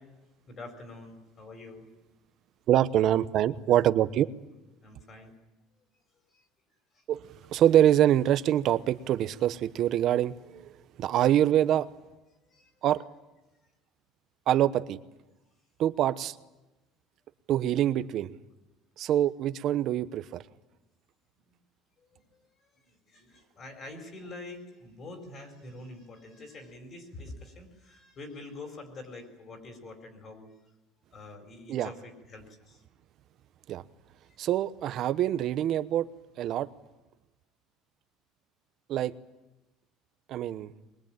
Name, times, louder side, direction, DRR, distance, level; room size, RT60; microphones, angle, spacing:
voice 1, 0.5-1.9 4.8-5.3 6.3-6.5 6.9-7.0 12.5-12.7 21.5-21.6 22.0-30.5 31.1-32.8 34.3-34.4, left 2 dB, 35° left, 5 dB, 4.5 m, -46 dB
voice 2, 2.7-4.3 7.1-10.6 11.0-11.9 12.8-13.0 14.5-15.0 15.8-16.3 17.5-18.3 19.0-20.4 31.7-31.9 33.7-33.8 34.4-36.1 36.4-36.7 38.9-39.1 40.3-40.7, right 11 dB, 45° right, 13 dB, 0.9 m, -25 dB
23.0 x 22.0 x 9.0 m, 1.0 s
cardioid pair, 155°, 0 cm